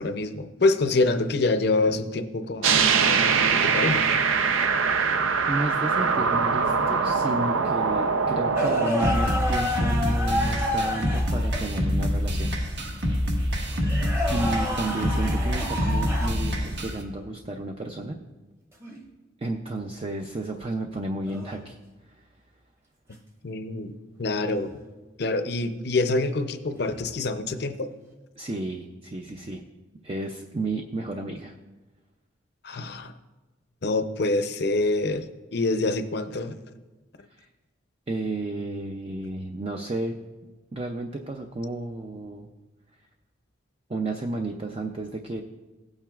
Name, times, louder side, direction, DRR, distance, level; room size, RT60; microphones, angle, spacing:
voice 1, 0.0-2.7 3.1-3.2 3.5-4.0 23.4-23.9 24.2-24.7 25.2-27.9 32.6-33.1 33.8-35.2 35.5-36.6, left 2 dB, 55° left, 9 dB, 0.6 m, -25 dB
sound 1, 2.6-8.9, right 5 dB, 85° right, 0.6 m, -22 dB
voice 2, 5.5-13.0 14.3-18.2 19.4-21.8 22.1-22.2 28.4-29.6 30.0-31.6 37.3-37.5 38.1-40.2 40.7-42.5 43.9-45.4, right 2 dB, 30° right, 4 dB, 0.4 m, -32 dB
sound 2, 8.5-11.7 13.7-16.4 18.8-19.0 21.2-21.6 24.5-24.7 26.7-27.1, left 1 dB, 15° right, 0.9 m, -30 dB
sound 3, 9.0-17.0, equal, 55° right, 1.3 m, -26 dB
16.5 x 8.8 x 2.4 m, 1.2 s
head